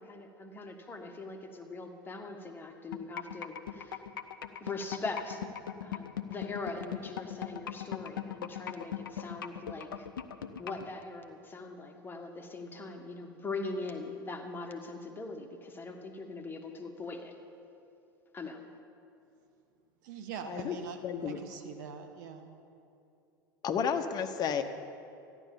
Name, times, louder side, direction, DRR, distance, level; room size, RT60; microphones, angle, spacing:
voice 1, 0.0-4.0 4.6-5.4 5.8-10.1 10.6-17.4 18.3-18.6, left 3 dB, 20° left, 3 dB, 1.7 m, -41 dB
sound 1, 2.9-10.9, left 10 dB, 70° left, 0.7 m, -38 dB
voice 2, 20.0-22.5, right 7 dB, 60° right, 6 dB, 1.3 m, -43 dB
voice 3, 21.0-21.4 23.6-24.6, left 7 dB, 35° left, 8 dB, 1.1 m, -31 dB
14.0 x 11.0 x 7.1 m, 2.6 s
figure-of-eight pair, 80°, 11 cm